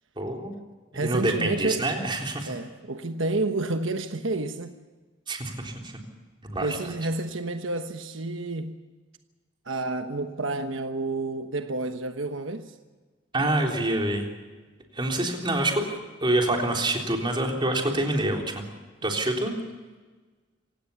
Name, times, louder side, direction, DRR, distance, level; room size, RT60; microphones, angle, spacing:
voice 1, 0.2-0.6 0.9-2.5 5.3-6.0 6.4-6.8 13.3-14.3 14.9-18.6 19.0-19.6, right 1 dB, 25° right, 3.8 m, -26 dB
voice 2, 0.9-1.8 2.5-4.7 6.6-8.7 9.6-12.7, right 2 dB, 75° right, 1.2 m, -30 dB
26.5 x 17.0 x 7.1 m
head